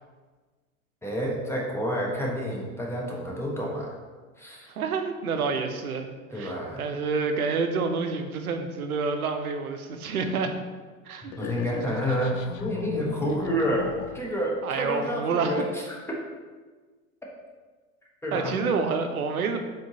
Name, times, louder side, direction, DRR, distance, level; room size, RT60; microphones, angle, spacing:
voice 1, 1.0-3.9 4.4-4.7 6.3-6.8 11.2-16.2 18.2-18.5, equal, 5° left, -3 dB, 0.5 m, -29 dB
voice 2, 4.8-6.1 6.3-10.5 11.1-11.3 14.6-15.6 18.3-19.6, right 4 dB, 80° right, 6 dB, 0.5 m, -28 dB
sound 1, 11.3-14.4, left 7 dB, 60° left, 0.5 m, -36 dB
3.7 x 3.5 x 2.7 m, 1.4 s
figure-of-eight pair, 85°, 42 cm